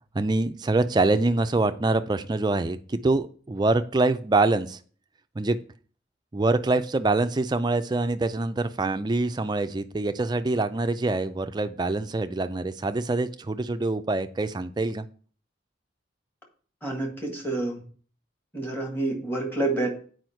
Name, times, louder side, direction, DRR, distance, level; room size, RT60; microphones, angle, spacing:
voice 1, 0.1-4.8 5.4-5.6 6.3-15.1, right 2 dB, 20° right, 10 dB, 0.4 m, -25 dB
voice 2, 16.8-17.8 18.5-19.9, right 2 dB, 10° left, 1 dB, 1.5 m, -28 dB
7.9 x 4.9 x 4.5 m, 0.44 s
head